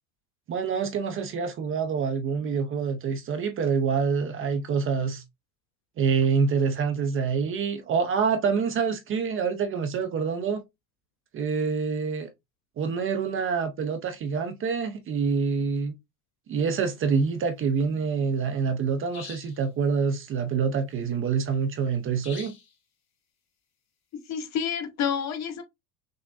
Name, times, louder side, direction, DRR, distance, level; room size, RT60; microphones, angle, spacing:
voice 1, 0.5-5.2 6.0-10.6 11.3-12.3 12.8-15.9 16.5-22.5, right 5 dB, 30° right, 0.6 m, -26 dB
sound 1, 19.1-19.6 22.2-22.7, left 6 dB, 85° left, 2.7 m, -43 dB
voice 2, 24.1-25.6, left 7 dB, 40° left, 0.8 m, -29 dB
6.1 x 2.1 x 2.5 m
supercardioid pair, 105°, 44 cm